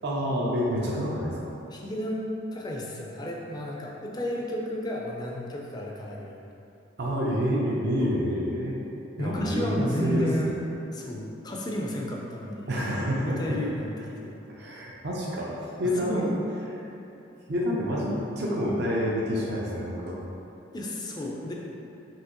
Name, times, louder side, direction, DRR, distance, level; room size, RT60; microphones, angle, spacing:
voice 1, 0.0-1.4 7.0-8.8 9.2-10.3 12.7-13.6 14.5-15.5 15.8-16.3 17.5-20.2, equal, 55° right, -4 dB, 0.5 m, -28 dB
voice 2, 1.7-6.4 8.0-8.2 9.2-10.5 10.9-14.4 16.0-16.4 20.7-21.5, left 1 dB, 20° left, -2 dB, 0.4 m, -32 dB
5.5 x 2.9 x 2.9 m, 2.9 s
head